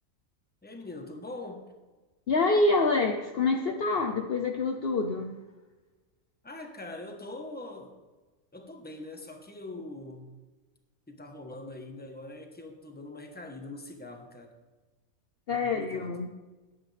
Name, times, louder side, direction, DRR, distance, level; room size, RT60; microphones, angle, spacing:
voice 1, 0.6-1.7 6.4-8.0 8.5-10.4 11.1-14.5 15.5-16.1, left 2 dB, 5° left, 4 dB, 1.1 m, -43 dB
voice 2, 2.3-5.4 15.5-16.3, left 3 dB, 55° left, 5 dB, 0.8 m, -26 dB
14.5 x 10.5 x 3.4 m, 1.2 s
omnidirectional pair, 1.5 m